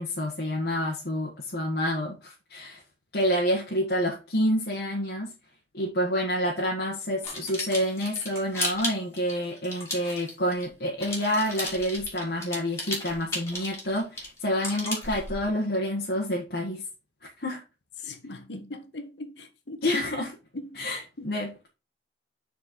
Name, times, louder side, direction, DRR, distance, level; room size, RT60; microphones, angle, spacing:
voice 1, 0.0-2.8 3.1-5.3 5.7-16.8 17.2-17.6 19.8-20.3 20.7-21.7, equal, 60° left, 1.6 m, -28 dB
sound 1, 7.2-10.7 11.0-15.5, left 1 dB, 15° left, 3.1 m, -34 dB
voice 2, 18.0-19.8 20.5-21.3, left 2 dB, 85° left, 1.3 m, -40 dB
6.4 x 4.6 x 4.5 m
head